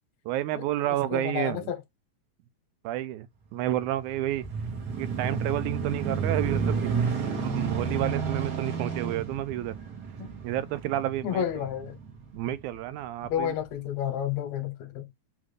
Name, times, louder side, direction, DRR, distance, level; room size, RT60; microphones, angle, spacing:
voice 1, 0.3-1.7 2.8-4.4 5.0-7.1 7.4-9.7 10.4-11.4 12.3-13.5, right 13 dB, 80° right, 1.9 m, -30 dB
voice 2, 1.1-1.8 10.2-10.3 11.2-12.0 13.3-15.1, left 10 dB, 70° left, 2.0 m, -30 dB
sound 1, 3.8-12.6 13.2-13.4, right 5 dB, 55° right, 1.1 m, -31 dB
5.0 x 2.4 x 3.2 m
omnidirectional pair, 3.5 m